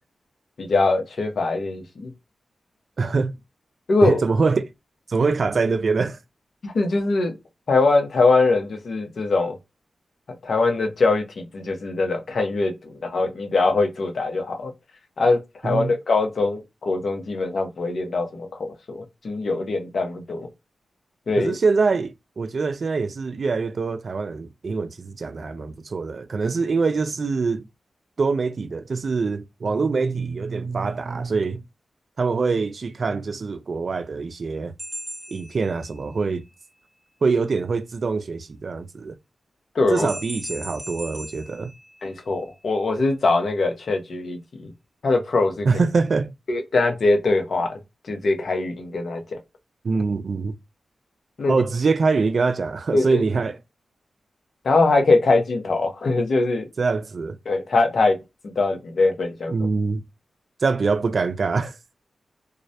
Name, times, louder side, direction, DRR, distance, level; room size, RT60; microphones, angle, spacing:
voice 1, 0.6-2.1 3.9-4.2 6.6-7.3 7.7-9.6 10.4-14.7 15.2-20.5 21.3-21.5 39.7-40.1 42.0-44.7 45.0-45.7 46.5-47.8 48.1-49.4 51.4-51.6 52.9-53.2 54.6-56.7 57.5-58.2 58.6-59.5, left 3 dB, 70° left, 0.8 m, -22 dB
voice 2, 3.0-3.4 4.0-4.7 5.1-6.2 15.6-15.9 21.4-27.7 28.2-31.6 32.2-34.7 35.3-36.4 37.2-39.1 39.9-41.7 45.6-46.3 49.8-50.5 51.5-53.6 56.8-57.4 59.5-60.0 60.6-61.8, right 4 dB, 65° right, 0.4 m, -24 dB
sound 1, 34.8-36.3 40.0-42.5, equal, 5° right, 0.9 m, -38 dB
2.3 x 2.0 x 2.7 m
supercardioid pair, 40°, 0 cm